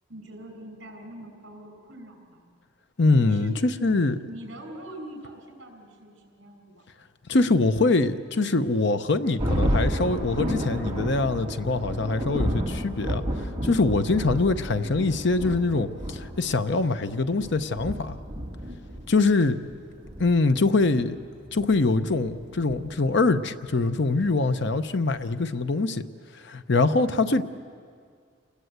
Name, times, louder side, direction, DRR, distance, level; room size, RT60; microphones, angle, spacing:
voice 1, 0.1-2.5 3.1-3.6 3.9-6.8, right 1 dB, 60° right, 5.5 m, -43 dB
voice 2, 3.0-4.2 7.3-18.1 19.1-19.6 20.2-21.2 21.5-26.0 26.4-27.4, left 3 dB, 60° left, 0.8 m, -23 dB
Thunder, 9.4-23.4, equal, 25° right, 2.7 m, -31 dB
29.0 x 20.5 x 8.0 m
head